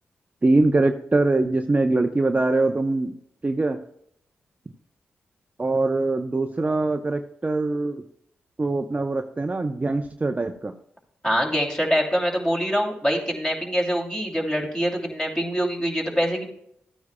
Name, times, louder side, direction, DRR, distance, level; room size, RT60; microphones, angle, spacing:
voice 1, 0.4-3.2 3.4-3.8 5.6-8.1 8.6-10.7, right 2 dB, 30° right, 6 dB, 0.6 m, -23 dB
voice 2, 11.2-16.5, equal, 15° left, 0 dB, 2.8 m, -24 dB
13.5 x 9.3 x 2.2 m, 0.72 s
supercardioid pair, 40°, 5 cm